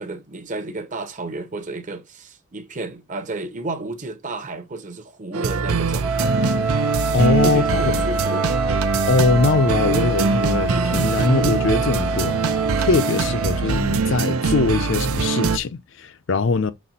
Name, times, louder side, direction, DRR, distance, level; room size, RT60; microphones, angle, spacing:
voice 1, 0.0-6.4 7.4-8.5, right 2 dB, 35° right, 0.8 m, -32 dB
sound 1, 5.3-15.6, right 4 dB, 80° right, 0.6 m, -22 dB
Wind instrument woodwind instrument, 6.0-13.7, right 3 dB, 5° right, 0.4 m, -27 dB
voice 2, 7.1-7.9 9.1-16.7, left 3 dB, 55° left, 0.5 m, -21 dB
5.7 x 4.2 x 4.2 m
head